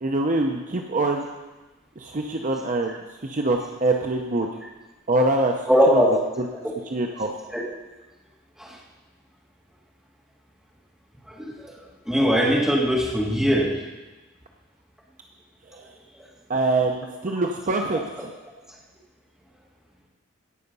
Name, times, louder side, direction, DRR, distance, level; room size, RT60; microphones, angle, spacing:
voice 1, 0.0-1.2 2.0-4.5 5.1-5.5 5.9-6.0 6.9-7.3 15.7-15.8 16.5-17.0 17.2-18.3, right 2 dB, 40° right, 3 dB, 0.7 m, -24 dB
voice 2, 5.7-6.1 6.6-6.7 7.5-7.6 8.6-8.8 11.3-11.8 12.1-13.7, equal, 5° right, -5 dB, 2.2 m, -20 dB
17.0 x 5.7 x 5.4 m, 1.1 s
head